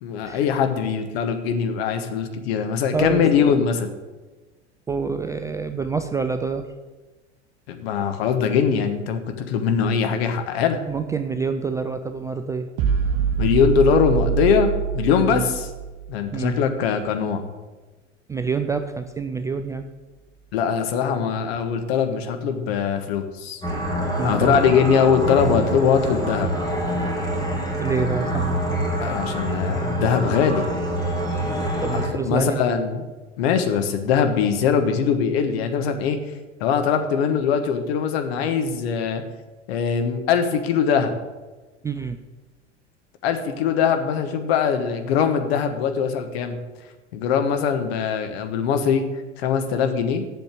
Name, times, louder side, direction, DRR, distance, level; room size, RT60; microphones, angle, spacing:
voice 1, 0.0-3.9 7.7-10.8 13.4-15.7 16.1-17.4 20.5-23.6 24.2-26.5 29.0-30.7 31.9-33.0 33.4-36.2 36.6-39.2 39.7-41.1 43.2-46.6 47.1-49.0 49.4-50.2, left 7 dB, 60° left, 7 dB, 1.4 m, -22 dB
voice 2, 2.9-3.3 4.9-6.7 10.9-12.7 15.3-15.5 16.3-16.6 18.3-19.8 24.2-24.6 27.7-28.6 31.8-32.6 41.8-42.2, right 5 dB, 10° right, 8 dB, 0.3 m, -26 dB
sound 1, 12.8-16.2, right 7 dB, 45° right, 0.8 m, -24 dB
sound 2, 23.6-32.1, right 1 dB, 10° left, 2.5 m, -26 dB
8.0 x 6.9 x 8.4 m, 1.2 s
figure-of-eight pair, 80°, 36 cm